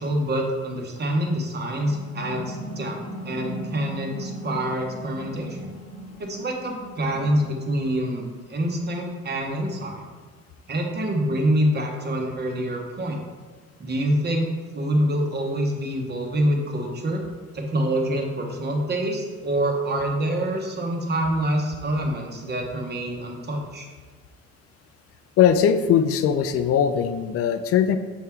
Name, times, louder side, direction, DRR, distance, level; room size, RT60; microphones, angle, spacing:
voice 1, 0.0-3.0 3.2-5.7 6.2-10.0 10.7-13.2 13.8-17.2 17.5-23.9, right 1 dB, 35° right, 2 dB, 0.9 m, -26 dB
sound 1, 1.8-7.5, equal, 75° right, 1.5 m, -37 dB
voice 2, 25.4-28.0, left 8 dB, 50° left, 10 dB, 0.4 m, -20 dB
6.4 x 3.6 x 4.5 m, 1.4 s
cardioid pair, 145°, 29 cm